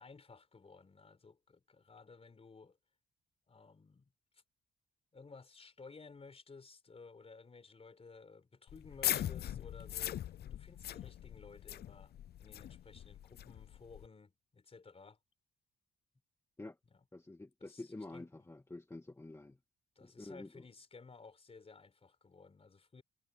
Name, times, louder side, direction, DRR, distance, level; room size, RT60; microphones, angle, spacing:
voice 1, 0.0-2.8 3.5-4.1 5.1-15.2 16.9-17.0 17.6-18.3 20.0-23.0, left 4 dB, 30° left, 4.4 m, -56 dB
sound 1, 8.7-14.1, left 11 dB, 55° left, 0.5 m, -40 dB
voice 2, 17.1-19.6 20.0-20.6, left 2 dB, 15° left, 2.2 m, -48 dB
cardioid pair, 90°, 20 cm